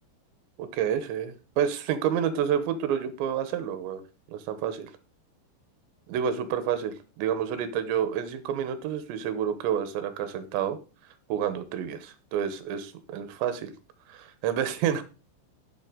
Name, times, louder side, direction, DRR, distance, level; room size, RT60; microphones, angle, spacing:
voice 1, 0.6-4.0 4.3-4.9 6.1-10.8 11.3-13.7 14.1-15.0, right 9 dB, 80° right, 3.1 m, -29 dB
9.2 x 8.2 x 3.8 m
omnidirectional pair, 5.3 m